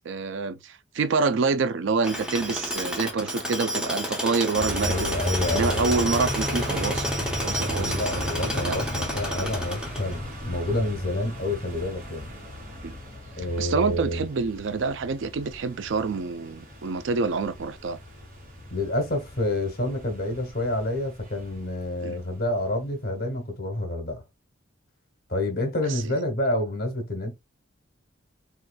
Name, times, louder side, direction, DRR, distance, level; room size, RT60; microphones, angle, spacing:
voice 1, 0.1-5.1 5.5-7.1 7.4-8.8 12.8-12.9 13.6-18.0 22.0-22.2 25.9-26.1, right 4 dB, 65° right, 0.4 m, -27 dB
Tools, 2.0-10.3, equal, 5° right, 0.6 m, -31 dB
sound 1, 4.5-23.1, equal, 40° right, 1.4 m, -35 dB
voice 2, 4.8-6.0 7.8-12.3 13.3-14.3 18.7-24.2 25.3-27.4, left 1 dB, 45° left, 1.1 m, -28 dB
3.9 x 2.6 x 2.2 m
head